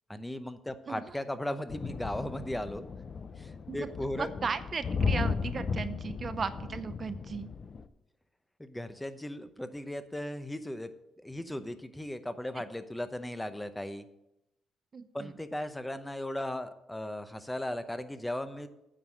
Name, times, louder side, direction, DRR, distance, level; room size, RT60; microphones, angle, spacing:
voice 1, 0.1-2.9 3.4-4.3 8.6-10.9 11.2-14.0 15.1-18.7, left 1 dB, 10° left, 11 dB, 0.7 m, -37 dB
sound 1, 1.7-7.9, left 5 dB, 40° left, 0.5 m, -35 dB
voice 2, 4.2-7.5 14.9-15.3, right 5 dB, 40° right, 12 dB, 0.6 m, -36 dB
8.9 x 4.7 x 7.6 m, 0.88 s
cardioid pair, 90°, 0 cm